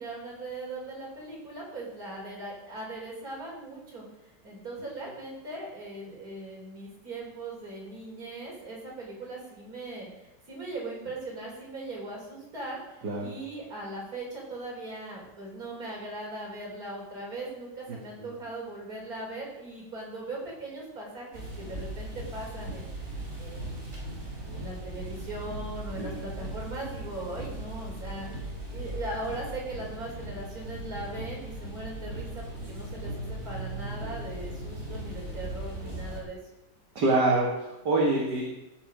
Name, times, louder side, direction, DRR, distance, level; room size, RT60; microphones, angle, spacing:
voice 1, 0.0-4.0 4.4-22.9 23.4-28.3 28.7-36.4, right 2 dB, 55° right, -2 dB, 4.5 m, -39 dB
voice 2, 17.9-18.3 26.0-26.2 37.0-38.4, right 2 dB, 75° right, -3 dB, 2.5 m, -26 dB
sound 1, 21.3-36.2, right 1 dB, 40° right, 4.5 m, -38 dB
15.0 x 8.8 x 5.1 m, 0.93 s
omnidirectional pair, 1.8 m